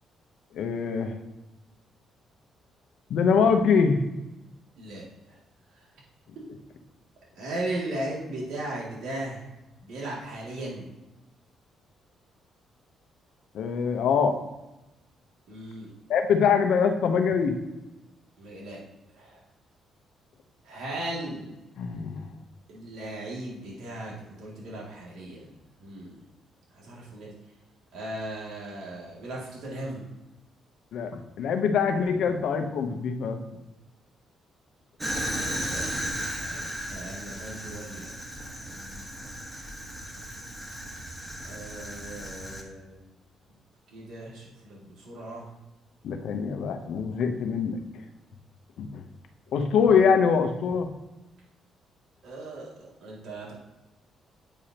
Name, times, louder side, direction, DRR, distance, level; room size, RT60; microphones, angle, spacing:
voice 1, 0.5-1.2 3.1-4.0 13.5-14.4 16.1-17.6 21.8-22.3 30.9-33.4 46.0-47.8 48.8-49.0 49.5-50.9, left 6 dB, 75° left, 6 dB, 0.9 m, -24 dB
voice 2, 4.8-5.4 5.7-5.8 7.4-9.5 9.8-10.9 15.5-15.9 18.4-18.8 19.1-19.4 20.6-21.5 22.7-25.5 25.8-26.2 26.7-27.3 27.9-30.0 35.3-35.8 36.3-38.1 38.4-39.1 41.4-43.0 43.9-45.5 52.2-53.5, right 1 dB, 80° right, -5 dB, 2.4 m, -37 dB
Fire, 35.0-42.6, equal, 20° right, 1.5 m, -35 dB
8.9 x 4.9 x 2.9 m, 1.0 s
cardioid pair, 90°, 0 cm